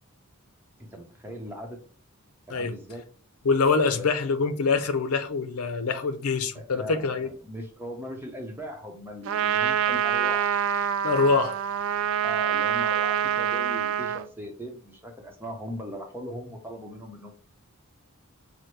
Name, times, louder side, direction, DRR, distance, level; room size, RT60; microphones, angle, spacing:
voice 1, 0.8-1.8 2.5-3.0 3.7-4.2 6.5-10.6 12.2-17.3, equal, 10° right, 0.8 m, -39 dB
voice 2, 3.4-7.3 11.0-11.6, left 4 dB, 90° left, 0.6 m, -24 dB
Trumpet, 9.2-14.3, right 9 dB, 65° right, 0.3 m, -26 dB
5.9 x 2.1 x 3.2 m
head